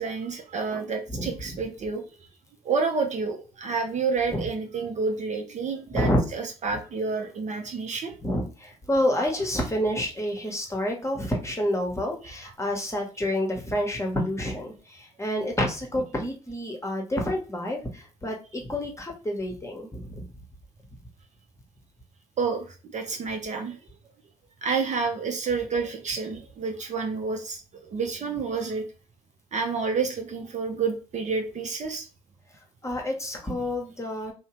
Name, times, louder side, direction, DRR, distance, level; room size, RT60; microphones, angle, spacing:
voice 1, 0.0-2.0 2.6-8.1 22.4-23.8 24.6-28.9 29.5-32.1, right 4 dB, 40° right, 4 dB, 0.6 m, -29 dB
voice 2, 1.1-1.6 4.3-4.4 5.9-6.2 8.2-20.2 32.8-34.3, left 1 dB, 15° left, 1 dB, 1.0 m, -28 dB
2.7 x 2.1 x 3.0 m, 0.34 s
hypercardioid pair, 50°, 18 cm